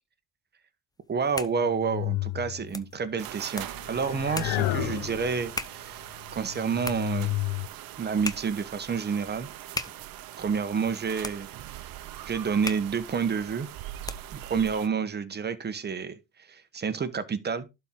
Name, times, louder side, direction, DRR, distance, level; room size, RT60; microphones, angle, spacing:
sound 1, 1.0-14.5, left 2 dB, 10° left, 0.6 m, -41 dB
voice 1, 1.1-7.4 8.0-9.5 10.4-11.8 12.3-13.7 14.3-17.7, right 6 dB, 25° right, 1.1 m, -29 dB
sound 2, 1.5-2.9 3.8-5.6 6.2-7.7, left 17 dB, 85° left, 0.7 m, -32 dB
sound 3, 3.2-14.9, right 13 dB, 65° right, 0.8 m, -42 dB
11.5 x 4.5 x 3.8 m
cardioid pair, 125°, 39 cm